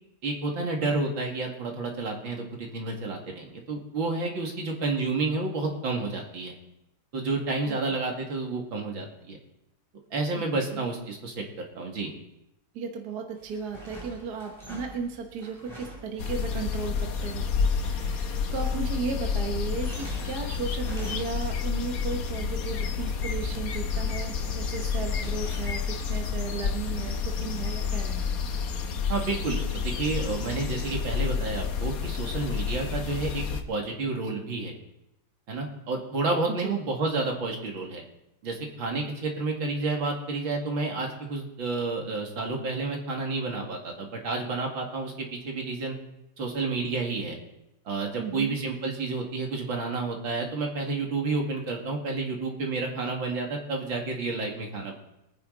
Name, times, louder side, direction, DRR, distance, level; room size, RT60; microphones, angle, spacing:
voice 1, 0.2-6.5 7.1-9.4 10.1-11.4 11.7-12.1 29.1-34.7 35.5-38.0 38.4-46.0 46.4-47.4 47.9-55.0, right 3 dB, 75° right, 1 dB, 3.0 m, -30 dB
voice 2, 7.7-8.0 10.3-10.4 10.7-10.9 12.7-28.4 36.5-36.7 48.2-48.6, right 5 dB, 55° right, 3 dB, 1.6 m, -35 dB
wooden blinds, 13.4-16.9 19.6-21.7 23.1-23.7 24.2-26.1, right 1 dB, 15° right, 3.3 m, -45 dB
sound 1, 16.2-33.6, left 6 dB, 55° left, 1.3 m, -30 dB
24.0 x 9.7 x 4.0 m, 0.87 s
omnidirectional pair, 2.1 m